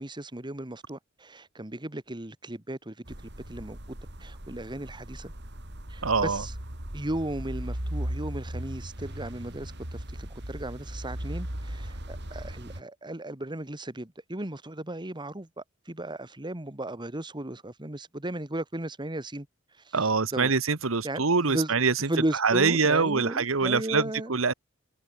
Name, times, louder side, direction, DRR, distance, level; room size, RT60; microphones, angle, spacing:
voice 1, 0.0-5.3 5.9-6.5 6.9-19.5 19.9-20.0 20.3-20.5 21.0-21.7 22.1-24.3, right 1 dB, 20° right, 1.8 m, -35 dB
sound 1, 3.1-12.8, equal, 60° right, 4.6 m, -37 dB
voice 2, 6.0-6.4 19.9-21.9 22.4-24.5, right 4 dB, 80° right, 1.3 m, -24 dB
head